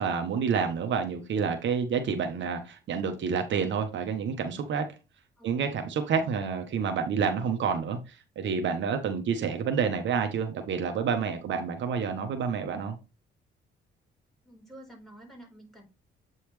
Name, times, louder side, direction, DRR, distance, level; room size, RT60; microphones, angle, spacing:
voice 1, 0.0-4.9 5.4-13.0, right 6 dB, 70° right, 6 dB, 1.2 m, -29 dB
voice 2, 5.4-5.8 14.4-15.8, right 1 dB, ahead, 0 dB, 4.4 m, -50 dB
8.4 x 4.2 x 3.3 m, 0.29 s
cardioid pair, 90°, 20 cm